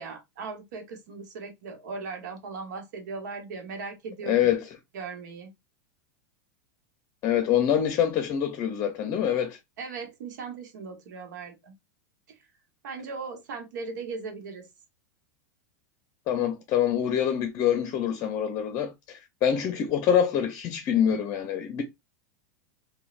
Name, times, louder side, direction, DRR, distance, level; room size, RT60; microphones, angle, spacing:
voice 1, 0.0-4.5 4.9-5.5 9.8-11.7 12.3-12.4 12.8-14.7, right 4 dB, 75° right, 1.0 m, -38 dB
voice 2, 4.3-4.7 7.2-9.6 16.3-21.8, left 9 dB, 40° left, 0.6 m, -25 dB
3.7 x 2.2 x 2.4 m
hypercardioid pair, 115°, 10 cm